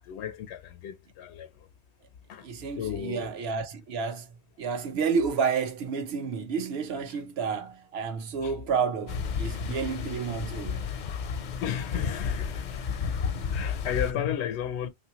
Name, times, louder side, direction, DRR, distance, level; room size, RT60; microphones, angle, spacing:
voice 1, 0.0-1.7 2.3-2.5 2.8-3.3 8.4-8.5 11.6-13.1 13.5-14.9, left 9 dB, 85° left, 0.9 m, -34 dB
voice 2, 2.4-10.9, right 6 dB, 70° right, 0.9 m, -30 dB
sound 1, 9.1-14.1, left 6 dB, 55° left, 0.5 m, -32 dB
3.0 x 2.5 x 2.8 m
omnidirectional pair, 1.1 m